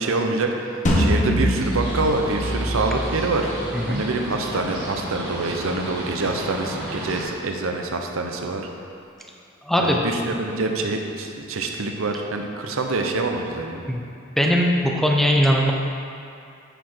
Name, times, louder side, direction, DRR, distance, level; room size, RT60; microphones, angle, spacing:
voice 1, 0.0-8.7 9.8-13.8, right 3 dB, 75° right, 3 dB, 0.7 m, -26 dB
sound 1, 0.9-5.9, equal, 35° left, 1.0 m, -26 dB
sound 2, 1.6-7.2, right 1 dB, 25° right, 1.9 m, -33 dB
voice 2, 9.6-10.0 13.9-14.0 14.4-15.7, equal, ahead, 0 dB, 0.5 m, -20 dB
9.0 x 4.7 x 4.5 m, 2.5 s
head